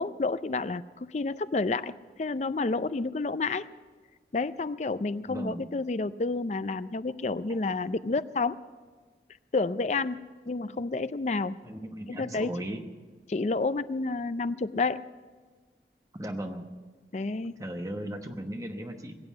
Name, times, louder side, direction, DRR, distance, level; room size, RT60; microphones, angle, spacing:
voice 1, 0.0-3.7 4.3-8.6 9.5-11.6 12.1-12.6 13.3-15.0 17.1-17.5, left 3 dB, 40° left, 14 dB, 0.4 m, -30 dB
voice 2, 5.3-5.6 7.5-7.6 11.6-12.8 16.1-16.7 17.6-19.2, right 1 dB, 20° right, 5 dB, 1.1 m, -37 dB
21.0 x 7.9 x 7.4 m, 1.5 s
head